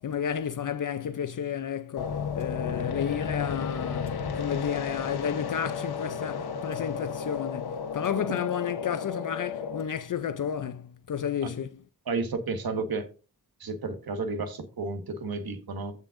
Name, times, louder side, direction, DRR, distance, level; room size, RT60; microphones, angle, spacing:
voice 1, 0.0-11.8, left 8 dB, 55° left, 0.5 m, -32 dB
sound 1, 2.0-9.8, left 6 dB, 85° left, 1.0 m, -33 dB
voice 2, 12.1-13.1 13.6-15.9, right 3 dB, 70° right, 1.5 m, -32 dB
16.0 x 5.4 x 2.6 m
wide cardioid pair, 130°, 37 cm